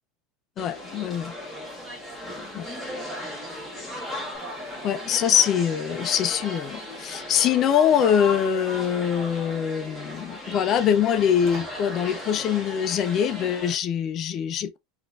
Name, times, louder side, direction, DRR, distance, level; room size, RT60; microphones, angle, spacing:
voice 1, 0.6-1.3 2.5-2.7 4.8-14.8, left 9 dB, 30° left, 0.3 m, -23 dB
sound 1, 0.6-13.7, left 1 dB, ahead, 0.9 m, -36 dB
sound 2, 4.3-10.6 11.0-11.8, right 4 dB, 40° right, 1.1 m, -50 dB
3.8 x 2.4 x 2.3 m
supercardioid pair, 165°, 0 cm